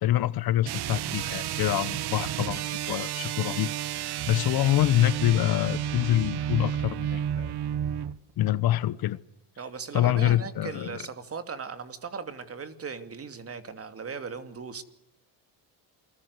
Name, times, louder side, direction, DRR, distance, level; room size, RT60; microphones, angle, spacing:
voice 1, 0.0-3.7 4.3-7.5 8.4-9.2 9.9-11.0, left 13 dB, 55° left, 1.1 m, -25 dB
sound 1, 0.6-8.2, right 10 dB, 60° right, 1.3 m, -32 dB
voice 2, 9.6-14.8, right 5 dB, 30° right, 2.7 m, -38 dB
29.0 x 21.0 x 8.2 m
cardioid pair, 120°, 43 cm